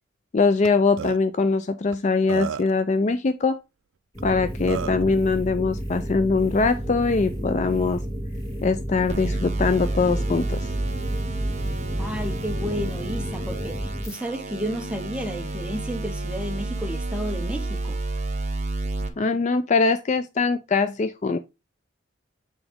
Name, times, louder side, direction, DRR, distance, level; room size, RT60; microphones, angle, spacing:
voice 1, 0.3-3.6 4.2-8.0 8.6-10.7 19.2-21.4, left 4 dB, 35° left, 0.4 m, -22 dB
Burping eructation, 0.6-0.7 1.0-1.2 1.9-2.0 2.3-2.8 4.2-4.3 4.7-5.0, right 7 dB, 80° right, 0.4 m, -31 dB
sound 1, 4.1-14.2, equal, 20° left, 2.3 m, -31 dB
sound 2, 9.1-19.1, right 2 dB, 35° right, 0.9 m, -30 dB
voice 2, 12.0-18.0, equal, 5° right, 1.0 m, -32 dB
7.0 x 4.0 x 3.5 m
head